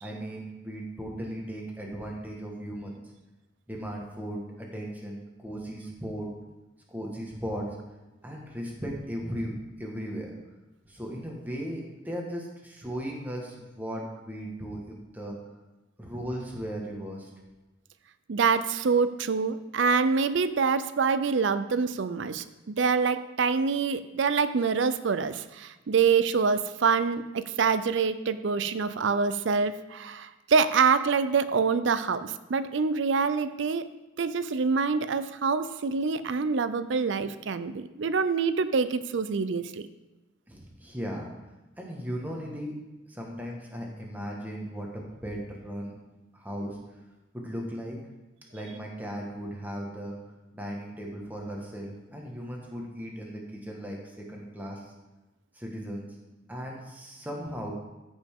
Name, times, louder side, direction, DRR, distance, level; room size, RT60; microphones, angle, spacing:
voice 1, 0.0-3.0 3.7-6.3 6.9-7.8 8.2-10.3 10.8-15.4 16.0-17.3 40.5-41.3 41.8-42.7 43.1-46.0 46.3-47.0 47.3-48.0 48.5-50.1 50.5-54.9 55.5-56.1 56.5-57.7, equal, 10° right, -1 dB, 1.4 m, -37 dB
voice 2, 18.3-33.8 34.2-39.8, right 5 dB, 70° right, 13 dB, 0.5 m, -26 dB
13.5 x 5.3 x 3.6 m, 1.0 s
head